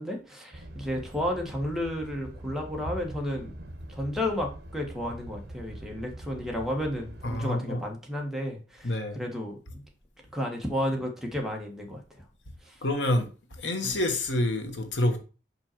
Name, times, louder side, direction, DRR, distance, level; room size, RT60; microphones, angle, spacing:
voice 1, 0.0-3.5 3.9-9.8 10.3-12.0 12.6-12.8, left 1 dB, ahead, 1.5 m, -32 dB
sound 1, 0.5-7.5, right 1 dB, 60° right, 1.1 m, -43 dB
voice 2, 7.2-7.8 8.8-9.2 12.8-13.3 13.6-15.2, left 1 dB, 90° left, 1.4 m, -27 dB
5.7 x 5.5 x 4.5 m
head